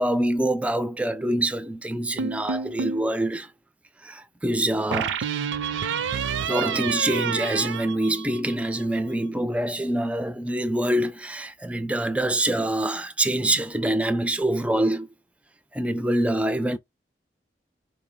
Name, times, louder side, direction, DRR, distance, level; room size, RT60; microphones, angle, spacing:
voice 1, 0.0-3.5 4.0-5.2 6.4-15.1 15.7-16.8, right 1 dB, 5° right, 0.3 m, -25 dB
sound 1, 2.2-3.1 4.9-8.7, right 7 dB, 85° right, 0.4 m, -29 dB
4.6 x 2.0 x 3.5 m
head